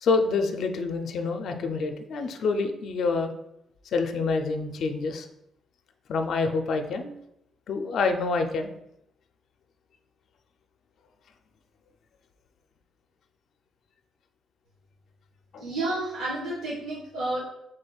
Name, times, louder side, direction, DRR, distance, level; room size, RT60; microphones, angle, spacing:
voice 1, 0.0-3.3 3.9-5.3 6.1-7.1 7.7-8.7 15.5-15.6, left 4 dB, 55° left, 6 dB, 0.4 m, -27 dB
voice 2, 15.6-17.4, right 2 dB, 80° right, -6 dB, 1.3 m, -30 dB
5.1 x 3.7 x 2.3 m, 0.81 s
cardioid pair, 150°, 0 cm